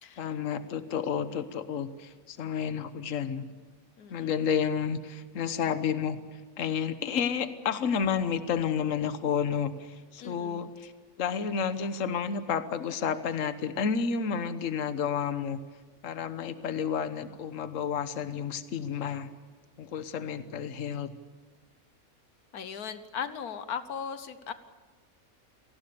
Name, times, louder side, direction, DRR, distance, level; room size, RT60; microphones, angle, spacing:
voice 1, 0.2-3.4 4.1-10.9 11.2-15.6 16.0-19.3 19.8-21.1, left 7 dB, 60° left, 11 dB, 1.4 m, -31 dB
voice 2, 4.0-4.3 10.2-10.7 22.5-24.5, left 7 dB, 80° left, 11 dB, 1.5 m, -38 dB
28.0 x 19.0 x 7.0 m, 1.4 s
omnidirectional pair, 1.6 m